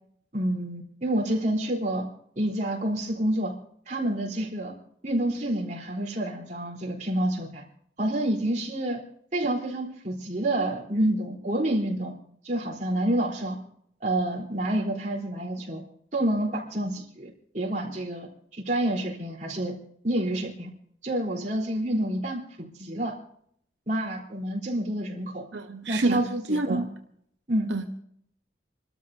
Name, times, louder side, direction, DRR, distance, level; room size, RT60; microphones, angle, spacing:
voice 1, 0.3-2.1 2.4-3.6 3.9-4.8 5.0-7.6 8.0-9.0 9.3-12.1 12.4-13.6 14.0-15.8 16.1-19.8 20.0-20.7 21.0-23.2 23.9-25.5 25.9-26.8 27.5-27.7, right 1 dB, 40° right, 3.6 m, -28 dB
voice 2, 25.5-26.9 27.7-27.9, right 2 dB, 90° right, 1.0 m, -27 dB
28.5 x 13.0 x 2.7 m
head